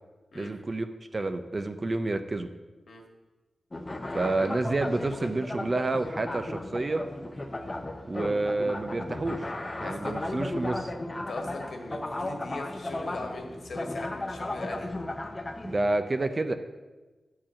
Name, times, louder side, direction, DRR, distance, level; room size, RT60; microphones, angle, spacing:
voice 1, 0.3-0.9 1.1-2.5 4.1-7.0 8.0-9.5 9.8-10.9 15.6-16.5, right 2 dB, 30° right, 8 dB, 0.6 m, -29 dB
sound 1, 3.7-16.0, left 1 dB, 20° left, 0.7 m, -35 dB
voice 2, 9.8-10.2 11.1-14.9, left 2 dB, 65° left, 2 dB, 1.7 m, -39 dB
10.5 x 4.7 x 7.4 m, 1.2 s
wide cardioid pair, 160°, 0 cm